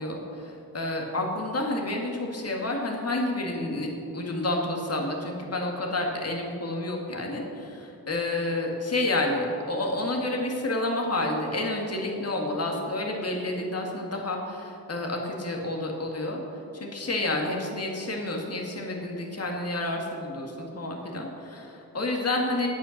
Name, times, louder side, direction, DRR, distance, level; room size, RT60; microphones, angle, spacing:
voice 1, 0.0-3.9 4.1-16.4 16.7-22.7, left 2 dB, 40° left, 0 dB, 1.9 m, -29 dB
8.8 x 8.6 x 6.5 m, 2.9 s
cardioid pair, 90°, 38 cm